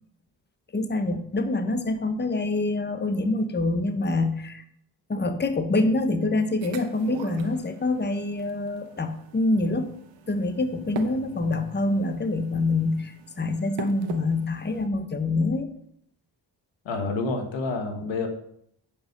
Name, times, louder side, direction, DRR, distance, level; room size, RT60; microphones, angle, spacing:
voice 1, 0.7-4.6 5.1-9.9 10.3-15.7, left 2 dB, 25° left, 7 dB, 1.1 m, -26 dB
sound 1, 6.6-14.9, right 6 dB, 85° right, 1.1 m, -42 dB
voice 2, 16.8-18.3, left 3 dB, 90° left, 5 dB, 1.5 m, -28 dB
9.0 x 5.2 x 5.3 m, 0.70 s
cardioid pair, 60°, 44 cm